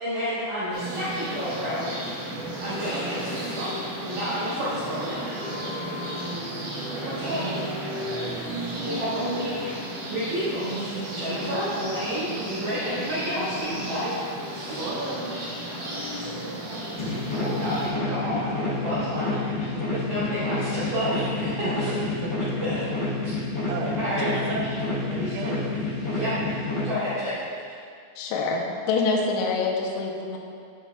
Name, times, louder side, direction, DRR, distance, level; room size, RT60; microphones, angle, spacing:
voice 1, 0.0-2.3 2.6-5.5 7.0-7.8 8.8-14.8 15.3-15.9 16.6-16.8 17.1-22.1 22.4-22.8 23.2-23.4 24.0-24.3 25.2-25.4 26.0-26.5 26.8-27.8, equal, 70° right, -11 dB, 1.9 m, -31 dB
sound 1, 0.7-17.9, right 1 dB, 55° right, 3.0 m, -33 dB
voice 2, 14.7-15.2 19.7-19.8 21.6-22.0 23.7-24.6 25.1-25.6, right 3 dB, 90° right, -3 dB, 1.9 m, -33 dB
sound 2, 17.0-26.9, left 2 dB, 50° left, 1.8 m, -29 dB
voice 3, 28.2-30.4, left 4 dB, 85° left, 0 dB, 2.8 m, -26 dB
11.0 x 5.8 x 2.3 m, 2.3 s
omnidirectional pair, 5.3 m